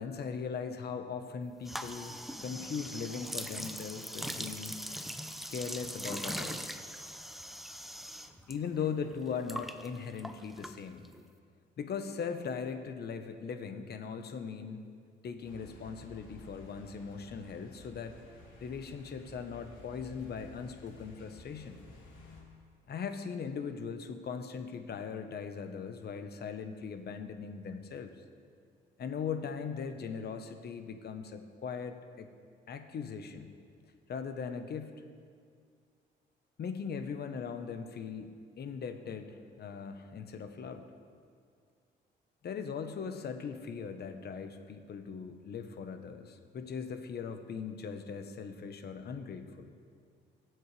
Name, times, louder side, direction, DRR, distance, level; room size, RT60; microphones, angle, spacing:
voice 1, 0.0-4.8 5.5-6.7 8.5-11.0 11.8-14.8 15.2-18.1 18.6-21.8 22.9-28.1 29.0-32.3 32.7-33.5 34.1-34.9 36.6-40.8 42.4-49.7, left 6 dB, 55° left, 7 dB, 1.0 m, -39 dB
sound 1, 1.6-8.6 8.8-11.2, equal, ahead, 0.6 m, -41 dB
sound 2, 15.4-22.4, left 2 dB, 80° left, 3.3 m, -54 dB
20.0 x 7.8 x 3.3 m, 2.1 s
cardioid pair, 90°, 20 cm